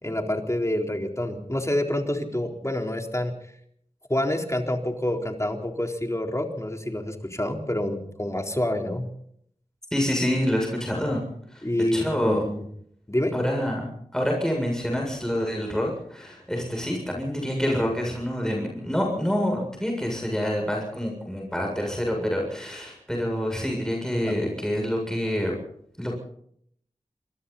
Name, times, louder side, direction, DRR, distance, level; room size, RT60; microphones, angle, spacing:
voice 1, 0.0-3.3 4.1-9.1 11.6-12.6 13.1-13.3 24.3-24.4, left 1 dB, 20° left, 3 dB, 4.0 m, -27 dB
voice 2, 9.9-11.2 11.5-11.6 11.9-12.4 13.3-25.5 26.0-26.2, equal, 5° left, 0 dB, 7.3 m, -27 dB
27.0 x 23.0 x 4.2 m, 0.67 s
wide cardioid pair, 50°, 13 cm